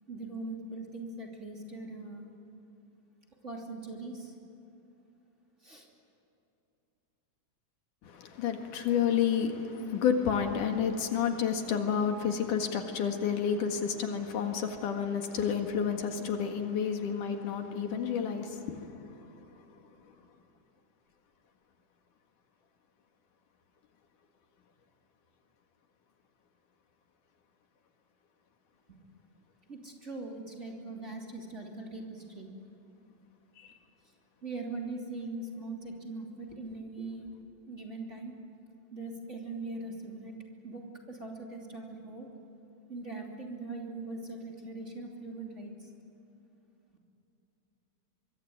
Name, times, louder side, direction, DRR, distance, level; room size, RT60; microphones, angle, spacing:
voice 1, 0.1-2.3 3.4-4.3 5.6-5.9 28.9-29.0 29.7-32.5 34.4-37.3 37.7-38.4 38.9-40.4 40.6-42.3 42.9-45.9, right 2 dB, 20° right, 3.1 m, -41 dB
voice 2, 8.0-18.9 33.6-33.7, left 7 dB, 75° left, 3.4 m, -30 dB
24.5 x 23.5 x 9.5 m
omnidirectional pair, 3.6 m